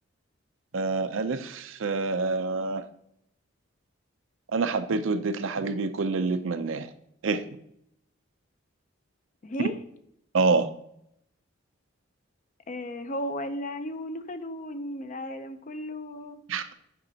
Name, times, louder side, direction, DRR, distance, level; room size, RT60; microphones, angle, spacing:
voice 1, 0.7-2.8 4.5-6.9 7.2-7.6 10.3-10.7 16.5-16.7, right 4 dB, 70° right, 10 dB, 0.5 m, -27 dB
voice 2, 9.4-9.8 12.7-16.4, left 1 dB, 40° left, 9 dB, 0.6 m, -35 dB
9.3 x 5.2 x 2.8 m, 0.74 s
head